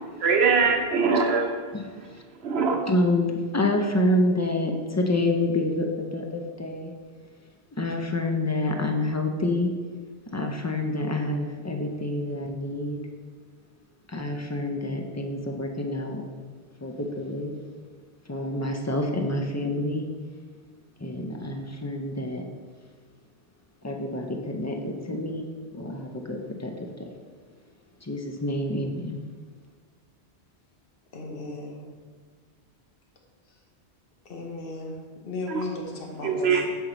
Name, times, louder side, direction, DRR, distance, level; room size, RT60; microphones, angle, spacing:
voice 1, 0.2-1.5 2.4-2.8 35.5-35.6 36.2-36.7, right 5 dB, 75° right, 3 dB, 1.0 m, -22 dB
voice 2, 1.7-2.2 2.9-6.9 7.8-9.7 10.3-13.0 14.1-16.2 16.8-17.5 18.3-20.1 21.0-22.4 23.8-26.7 27.0-27.1 28.0-29.2, left 1 dB, 25° left, 3 dB, 0.4 m, -28 dB
voice 3, 31.1-31.8 34.2-35.0 35.2-36.6, left 3 dB, 60° left, 1 dB, 1.2 m, -35 dB
7.5 x 4.5 x 3.9 m, 1.5 s
omnidirectional pair, 1.1 m